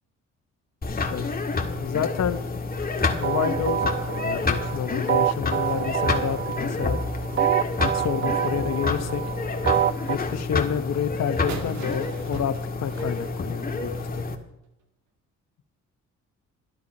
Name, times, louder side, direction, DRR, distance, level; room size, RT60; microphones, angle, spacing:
sound 1, 0.8-14.4, left 3 dB, 30° left, 1.8 m, -28 dB
voice 1, 1.7-2.4 3.2-7.0 7.8-9.2 10.1-12.5 12.8-14.2, left 9 dB, 60° left, 10 dB, 1.1 m, -29 dB
sound 2, 3.1-10.2, right 11 dB, 40° right, 0.5 m, -27 dB
sound 3, 11.5-14.2, right 5 dB, 65° right, 2.1 m, -39 dB
12.0 x 11.5 x 5.4 m, 0.86 s
cardioid pair, 90°, 30 cm